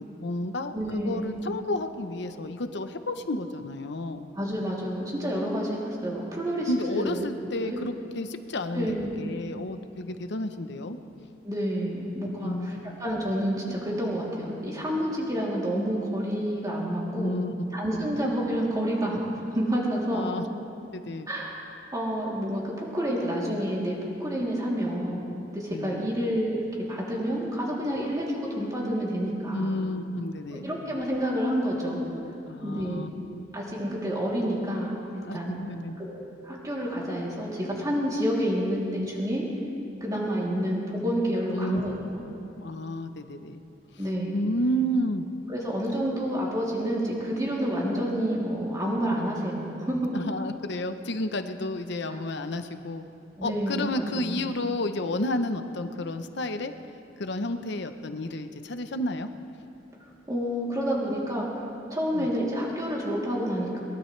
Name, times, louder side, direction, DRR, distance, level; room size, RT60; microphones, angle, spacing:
voice 1, 0.0-4.3 6.7-11.0 12.4-13.0 17.2-17.6 18.0-18.3 20.1-20.6 20.9-21.3 25.7-26.0 29.5-30.7 32.5-33.1 35.2-36.0 41.5-41.8 42.6-43.6 44.3-45.2 50.1-53.0 53.4-56.7 57.2-59.3 62.1-62.3, left 1 dB, 65° left, 8 dB, 0.9 m, -31 dB
voice 2, 0.7-1.3 4.3-7.2 7.6-7.8 8.7-9.1 11.4-12.7 13.0-17.4 17.7-19.2 19.5-20.3 21.3-21.5 21.9-25.2 25.5-29.8 30.5-32.1 32.6-33.0 33.5-35.0 35.3-35.6 36.0-39.5 40.0-42.2 44.0-44.4 45.5-50.1 53.4-53.9 54.1-54.4 60.3-61.5 61.9-63.8, equal, 20° right, -5 dB, 3.1 m, -29 dB
22.0 x 19.5 x 3.3 m, 2.7 s
head